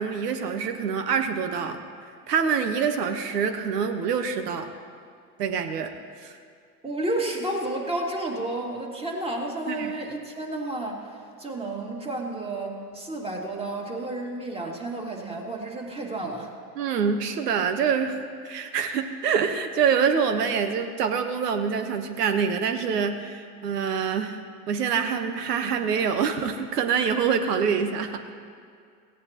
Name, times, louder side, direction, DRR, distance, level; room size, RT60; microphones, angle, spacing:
voice 1, 0.0-1.8 2.3-4.7 5.4-5.9 6.2-6.3 9.7-9.9 16.7-18.2 18.4-24.4 24.7-28.3, right 6 dB, 80° right, 8 dB, 1.2 m, -25 dB
voice 2, 6.8-16.5, right 2 dB, 10° right, -1 dB, 2.4 m, -31 dB
17.5 x 16.0 x 3.0 m, 2.2 s
hypercardioid pair, 85°, 47 cm